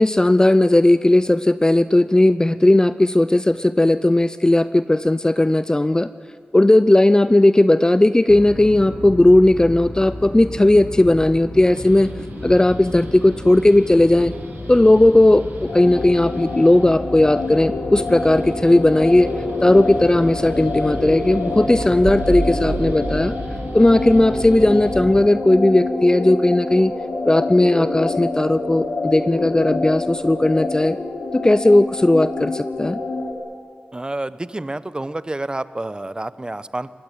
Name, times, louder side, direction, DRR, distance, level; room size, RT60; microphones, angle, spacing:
voice 1, 0.0-6.1 6.5-12.1 12.4-14.3 14.7-19.3 19.6-23.3 23.7-26.9 27.2-31.0 31.3-33.0, left 1 dB, 20° left, 14 dB, 0.6 m, -16 dB
sound 1, 8.3-25.3, left 2 dB, 35° left, 2.0 m, -34 dB
sound 2, 11.7-24.9, right 3 dB, 85° right, 4.0 m, -34 dB
sound 3, 15.7-33.3, left 3 dB, 85° left, 3.1 m, -27 dB
voice 2, 33.9-36.9, right 2 dB, 25° right, 15 dB, 1.0 m, -29 dB
23.0 x 19.5 x 9.0 m, 2.1 s
cardioid pair, 45°, 3 cm